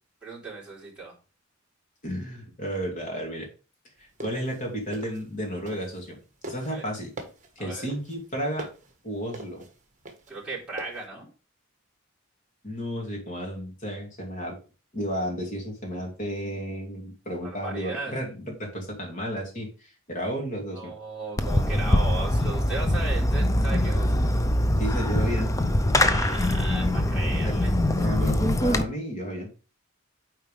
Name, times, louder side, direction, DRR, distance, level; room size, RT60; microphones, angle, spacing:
voice 1, 0.2-1.1 6.6-6.8 7.6-7.9 10.3-11.3 17.4-18.1 20.7-24.3 25.9-27.7, right 3 dB, 5° right, -8 dB, 3.5 m, -36 dB
voice 2, 2.0-3.5 4.0-6.2 6.4-7.1 7.6-8.7 9.0-9.6 12.6-14.6 14.9-20.9 24.8-25.5 27.4-27.5 28.0-29.5, equal, 40° left, 0 dB, 2.6 m, -32 dB
sound 1, 4.0-6.1 6.4-11.0, right 2 dB, 40° right, 1.4 m, -42 dB
Fireworks, 21.4-28.8, left 1 dB, 15° left, 0.5 m, -23 dB
8.8 x 4.5 x 3.3 m, 0.34 s
head